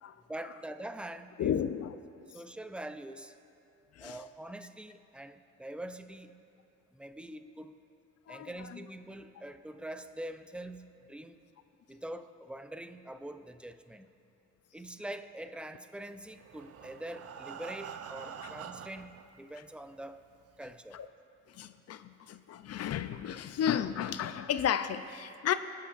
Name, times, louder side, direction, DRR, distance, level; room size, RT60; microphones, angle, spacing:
voice 1, 0.3-1.5 2.3-3.3 4.0-6.4 6.9-7.8 8.3-11.4 11.9-14.1 14.7-20.2 20.6-21.0, right 1 dB, 5° right, 9 dB, 0.5 m, -44 dB
voice 2, 1.4-1.9 4.0-4.2 8.3-8.8 20.9-21.1 21.5-25.5, left 9 dB, 55° left, 11 dB, 0.5 m, -33 dB
Breathing, 16.3-19.2 20.0-20.1 20.5-20.6 21.0-21.1, right 7 dB, 55° right, 0.6 m, -45 dB
24.0 x 8.7 x 2.5 m, 2.9 s
cardioid pair, 90°, 30 cm